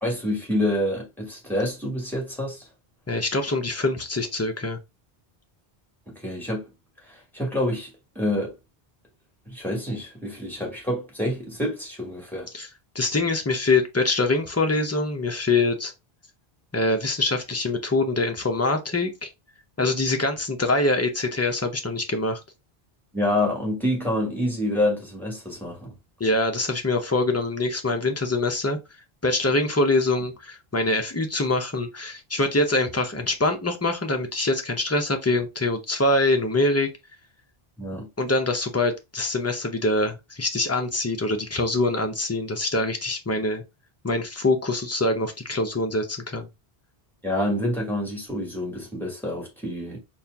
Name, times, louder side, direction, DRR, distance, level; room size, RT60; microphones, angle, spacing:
voice 1, 0.0-2.6 6.1-6.7 7.0-8.5 9.5-12.5 23.1-25.9 37.8-38.1 47.2-50.0, left 1 dB, ahead, 1.6 m, -27 dB
voice 2, 3.1-4.8 12.5-12.7 12.9-15.9 16.7-19.3 19.8-22.4 26.2-28.8 29.2-36.9 38.2-43.6 44.0-46.5, left 2 dB, 20° left, 0.5 m, -24 dB
4.2 x 2.4 x 3.4 m
omnidirectional pair, 1.0 m